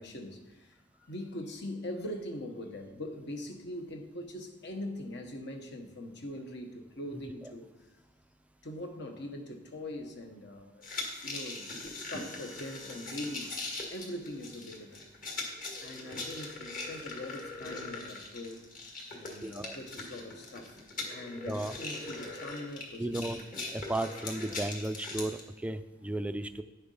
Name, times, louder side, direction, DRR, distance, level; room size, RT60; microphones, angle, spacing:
voice 1, 0.0-7.7 8.6-15.0 15.8-18.6 19.1-20.8 21.1-23.3, left 1 dB, 60° left, 5 dB, 1.2 m, -42 dB
sound 1, 10.8-25.4, left 2 dB, 45° left, 1.9 m, -41 dB
voice 2, 19.4-19.8 21.4-21.8 23.0-23.4 23.7-26.6, right 1 dB, 5° right, 9 dB, 0.4 m, -35 dB
9.2 x 7.0 x 5.6 m, 1.1 s
head